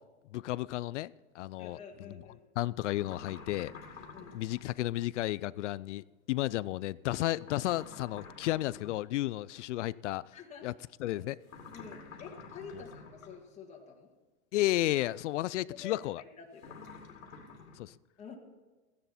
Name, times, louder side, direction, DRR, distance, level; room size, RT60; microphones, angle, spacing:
voice 1, 0.3-1.8 2.6-3.7 4.3-10.2 10.6-10.7 11.0-11.3 14.5-16.2 17.8-17.9, left 16 dB, 65° left, 19 dB, 0.5 m, -32 dB
voice 2, 1.6-2.4 4.0-4.5 10.3-10.7 11.0-11.2 11.7-14.1 15.8-17.0 18.2-18.4, left 6 dB, 15° left, -1 dB, 1.9 m, -49 dB
sound 1, 2.9-4.7 7.4-9.1 11.4-13.4 16.6-17.8, left 4 dB, 90° left, 2.5 m, -49 dB
15.0 x 10.5 x 4.3 m, 1.2 s
hypercardioid pair, 130°, 40 cm